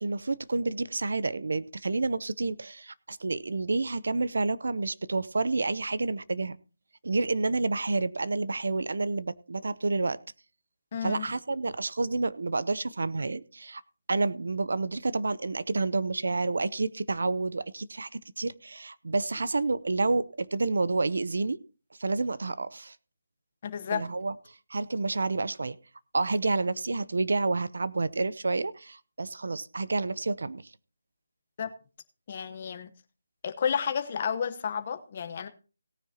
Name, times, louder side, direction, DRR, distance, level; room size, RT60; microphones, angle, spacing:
voice 1, 0.0-6.6 7.0-10.2 11.0-13.8 14.1-21.6 22.0-23.0 23.9-24.3 24.7-25.8 26.1-30.7, right 3 dB, 75° right, 17 dB, 0.7 m, -29 dB
voice 2, 10.9-11.3 23.6-24.1 31.6-31.7 32.3-32.9 33.4-35.5, left 7 dB, 30° left, 8 dB, 1.0 m, -31 dB
17.5 x 9.6 x 2.9 m, 0.35 s
hypercardioid pair, 170°, 0 cm